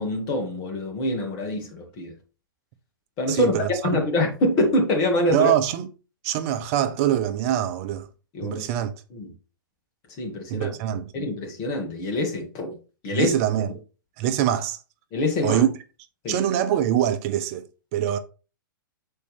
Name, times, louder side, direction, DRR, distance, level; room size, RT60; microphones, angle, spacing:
voice 1, 0.0-2.1 3.2-3.5 3.8-5.5 8.3-8.6 9.1-9.3 10.2-10.7 11.1-12.7 13.0-13.3 15.1-15.6 16.2-16.4, left 1 dB, 35° left, 2.3 m, -25 dB
voice 2, 3.3-4.0 5.3-5.9 6.2-8.1 8.4-8.9 10.5-11.1 13.1-13.7 14.2-14.8 15.4-15.7 16.3-17.6 17.9-18.2, right 11 dB, 45° right, 0.8 m, -24 dB
6.9 x 4.4 x 3.4 m
hypercardioid pair, 115°, 11 cm